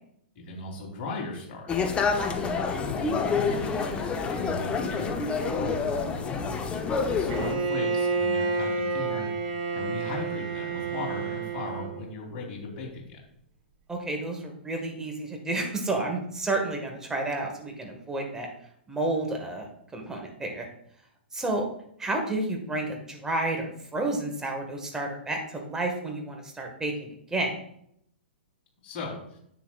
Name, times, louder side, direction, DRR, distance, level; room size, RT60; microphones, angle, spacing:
voice 1, 0.4-4.0 4.3-5.9 7.0-9.2 9.7-13.2 28.8-29.4, left 3 dB, 35° left, -2 dB, 3.7 m, -37 dB
sound 1, 1.7-7.6, left 5 dB, 15° left, 0.9 m, -28 dB
Bowed string instrument, 7.3-12.0, right 4 dB, 45° right, 1.8 m, -29 dB
voice 2, 13.9-18.5 18.9-20.7 21.3-21.6 22.0-27.5, right 2 dB, 10° right, 2 dB, 1.6 m, -31 dB
10.0 x 8.6 x 2.4 m, 0.71 s
figure-of-eight pair, 110°, 6 cm